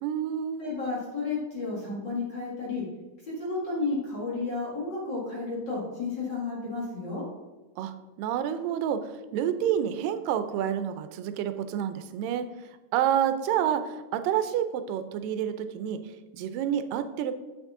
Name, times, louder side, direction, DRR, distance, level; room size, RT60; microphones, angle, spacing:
voice 1, 0.0-0.7 7.8-12.5 12.9-17.3, right 9 dB, 90° right, 10 dB, 2.3 m, -29 dB
voice 2, 0.6-2.8 3.3-7.2, left 3 dB, 40° left, -5 dB, 2.0 m, -32 dB
8.2 x 6.3 x 3.6 m, 1.2 s
omnidirectional pair, 3.8 m